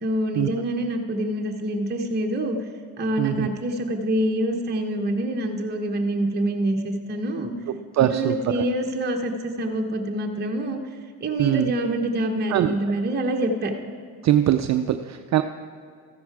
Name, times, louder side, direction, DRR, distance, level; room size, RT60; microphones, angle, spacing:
voice 1, 0.0-2.6 3.0-7.5 8.1-10.8 11.2-13.7, right 1 dB, 25° right, 1 dB, 1.0 m, -26 dB
voice 2, 3.2-3.5 7.9-8.6 11.4-11.7 12.5-12.7 14.2-15.4, right 12 dB, 40° right, 8 dB, 0.5 m, -22 dB
14.0 x 10.5 x 4.7 m, 2.2 s
supercardioid pair, 95°, 43 cm